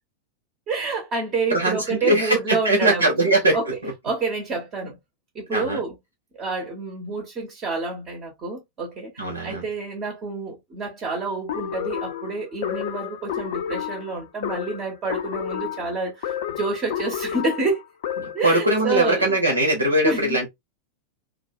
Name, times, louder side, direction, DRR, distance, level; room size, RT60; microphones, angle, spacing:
voice 1, 0.7-3.7 4.0-5.0 5.3-5.9 6.4-17.8 18.3-19.3 20.0-20.4, right 3 dB, 30° right, 0.8 m, -28 dB
voice 2, 1.5-3.6 3.8-3.9 5.5-5.8 9.2-9.6 18.2-20.5, right 1 dB, 75° right, 0.8 m, -21 dB
sound 1, 11.5-18.5, left 10 dB, 55° left, 0.4 m, -31 dB
2.4 x 2.2 x 2.5 m
figure-of-eight pair, 90°, 0 cm